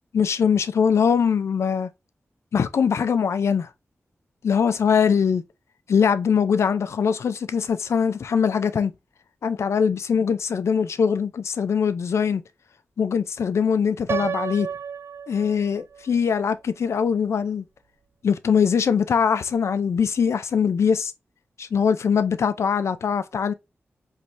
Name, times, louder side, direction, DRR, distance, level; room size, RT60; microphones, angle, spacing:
voice 1, 0.1-1.9 2.5-3.7 4.4-5.4 5.9-8.9 9.4-12.4 13.0-14.7 15.3-17.6 18.2-21.1 21.6-23.5, left 6 dB, 80° left, 0.5 m, -22 dB
Piano, 14.1-16.0, right 7 dB, 60° right, 0.4 m, -31 dB
4.5 x 3.2 x 2.6 m
cardioid pair, 60°, 5 cm